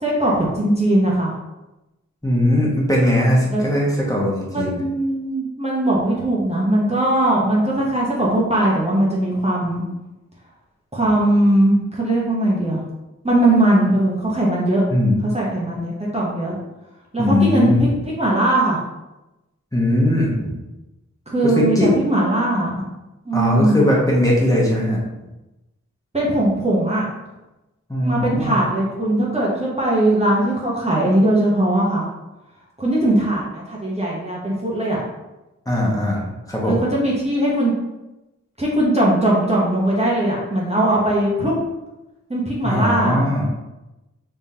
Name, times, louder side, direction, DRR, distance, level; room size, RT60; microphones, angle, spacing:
voice 1, 0.0-1.3 3.5-3.7 4.5-9.8 10.9-12.8 13.2-14.8 15.2-16.6 17.1-17.9 18.2-18.8 21.3-22.8 23.2-23.8 26.1-27.1 28.0-32.1 32.8-35.0 36.6-37.7 38.6-41.5 42.3-43.2, right 1 dB, 20° right, -5 dB, 0.9 m, -19 dB
voice 2, 2.2-4.8 14.9-15.2 17.2-17.8 19.7-20.6 21.4-21.9 23.3-25.0 27.9-28.6 35.7-36.8 42.6-43.5, left 1 dB, 10° left, -4 dB, 1.2 m, -19 dB
3.6 x 3.3 x 2.8 m, 1.0 s
cardioid pair, 45°, 30 cm